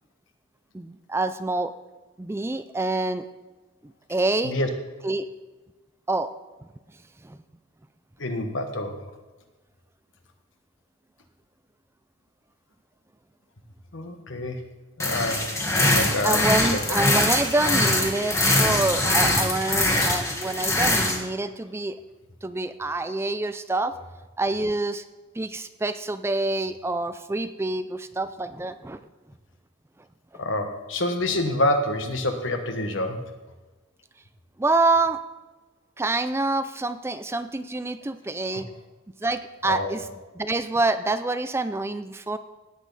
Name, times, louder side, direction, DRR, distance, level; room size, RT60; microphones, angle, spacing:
voice 1, 0.7-1.7 2.2-3.2 3.8-4.5 5.0-5.3 6.1-6.3 7.2-7.4 16.2-22.0 22.4-23.9 24.4-25.0 25.3-29.0 30.3-30.4 34.6-35.2 36.0-38.7 39.2-40.1 40.4-42.4, right 2 dB, 10° right, 11 dB, 0.4 m, -26 dB
voice 2, 8.2-9.1 13.9-14.6 15.0-15.5 15.7-16.7 30.4-33.3 38.5-38.6 39.7-39.9, left 1 dB, 65° left, 6 dB, 1.3 m, -27 dB
sound 1, 15.0-21.2, left 1 dB, 15° left, 1.5 m, -23 dB
17.0 x 8.3 x 4.1 m, 1.2 s
head